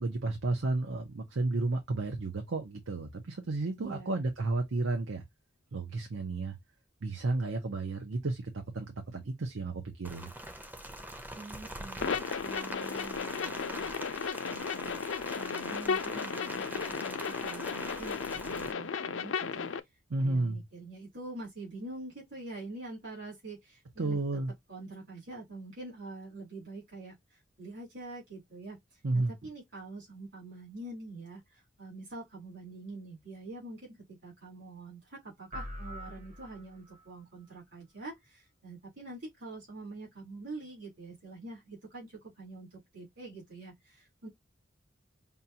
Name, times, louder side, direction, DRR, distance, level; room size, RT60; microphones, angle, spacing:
voice 1, 0.0-5.2 5.7-6.6 7.0-10.3 20.1-20.6 24.0-24.5 29.0-29.3, right 2 dB, 90° right, 0.8 m, -32 dB
voice 2, 3.8-4.2 11.3-15.0 15.3-19.7 20.2-24.2 24.7-44.3, right 2 dB, 65° right, 3.3 m, -45 dB
Rain, 10.0-18.7, right 1 dB, 10° right, 0.5 m, -43 dB
sound 1, 12.0-19.8, left 6 dB, 80° left, 0.5 m, -35 dB
sound 2, 35.5-37.1, equal, 40° right, 0.8 m, -43 dB
5.4 x 2.3 x 2.7 m
head